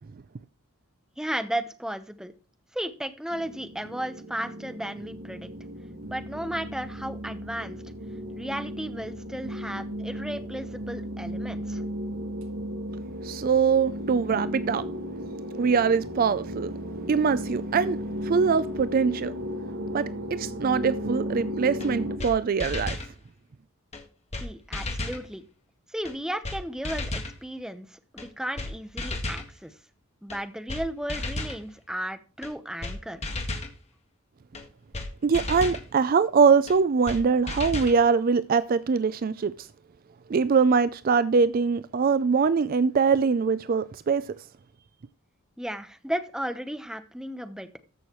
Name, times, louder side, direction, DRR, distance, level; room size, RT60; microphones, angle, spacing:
voice 1, 1.2-2.3 2.7-5.5 6.1-7.8 8.3-11.8 24.4-25.4 25.9-29.7 30.2-33.2 45.6-47.7, right 1 dB, 5° right, 0.9 m, -34 dB
sound 1, 3.3-22.2, equal, 80° right, 1.8 m, -35 dB
voice 2, 13.2-14.8 15.6-16.7 17.1-19.3 19.9-23.0 35.2-39.7 40.3-44.2, right 5 dB, 45° right, 0.4 m, -23 dB
sound 2, 21.8-21.9 22.2-22.3 22.6-23.1 23.9-24.0 24.3-24.5 24.7-25.2 26.1-26.2 26.4-26.6 26.8-27.3 28.2-28.3 28.6-28.7 29.0-29.5 30.3-30.4 30.7-30.8 31.1-31.6 32.4-32.5 32.8-33.0 33.2-33.7 34.6-34.7 34.9-35.1 35.3-35.8 36.7-36.8 37.1-37.2 37.5-38.0, left 2 dB, 30° left, 1.7 m, -33 dB
14.0 x 6.4 x 3.1 m
head